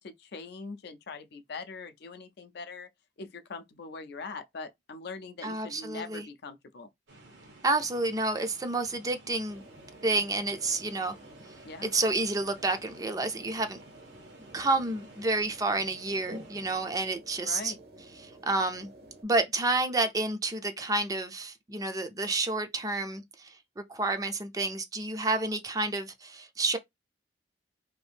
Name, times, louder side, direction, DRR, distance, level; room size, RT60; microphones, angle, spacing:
voice 1, 0.0-2.9 3.2-6.9 11.7-11.9 17.4-17.8, left 4 dB, 65° left, 0.5 m, -42 dB
voice 2, 5.4-6.3 7.6-9.6 10.0-11.2 11.8-13.8 14.5-17.7 18.2-18.9 19.2-26.8, right 2 dB, 20° right, 0.4 m, -30 dB
sound 1, 7.1-16.8, right 2 dB, 90° right, 1.1 m, -54 dB
sound 2, 9.5-19.2, right 1 dB, 60° right, 0.8 m, -51 dB
2.7 x 2.5 x 3.4 m
head